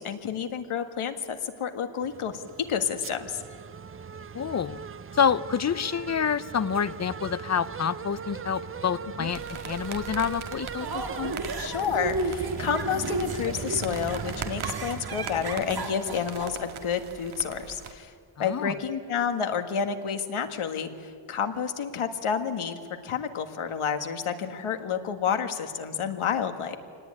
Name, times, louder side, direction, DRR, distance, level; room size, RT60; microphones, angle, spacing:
voice 1, 0.0-2.4 2.7-3.4 9.2-9.3 11.6-18.1 18.4-26.8, left 7 dB, 80° left, 7 dB, 1.9 m, -30 dB
sound 1, 2.0-16.6, right 6 dB, 25° right, 0.5 m, -39 dB
voice 2, 4.3-4.8 5.1-11.3 18.4-18.7, left 7 dB, 35° left, 16 dB, 0.5 m, -28 dB
sound 2, 9.3-17.9, right 6 dB, 75° right, 2.0 m, -42 dB
sound 3, 10.8-16.5, right 3 dB, 45° right, 2.4 m, -33 dB
25.0 x 19.0 x 9.7 m, 2.2 s
wide cardioid pair, 155°, 49 cm